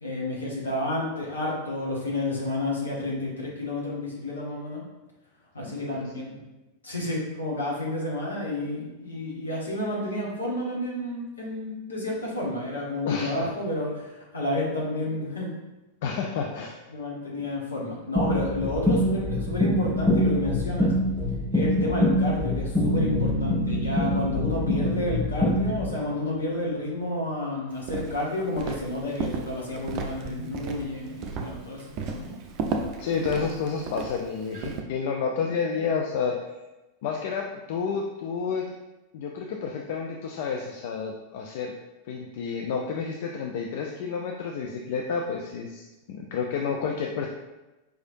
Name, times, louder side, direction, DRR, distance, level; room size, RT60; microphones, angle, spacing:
voice 1, 0.0-4.8 5.5-6.4 6.8-15.5 16.9-20.9 21.5-32.4, left 1 dB, 75° left, -4 dB, 1.2 m, -30 dB
voice 2, 13.0-13.5 15.1-15.2 16.0-16.8 33.0-36.4 37.0-38.7 39.1-41.7 42.1-47.3, left 5 dB, 50° left, 1 dB, 0.3 m, -30 dB
sound 1, 18.2-25.9, left 1 dB, 10° right, 1.2 m, -25 dB
Bass guitar, 22.8-26.5, left 1 dB, 5° left, 1.0 m, -31 dB
Walk footsteps, 27.8-34.8, right 5 dB, 40° right, 0.4 m, -34 dB
4.7 x 3.2 x 2.6 m, 1.1 s
figure-of-eight pair, 90°, 0 cm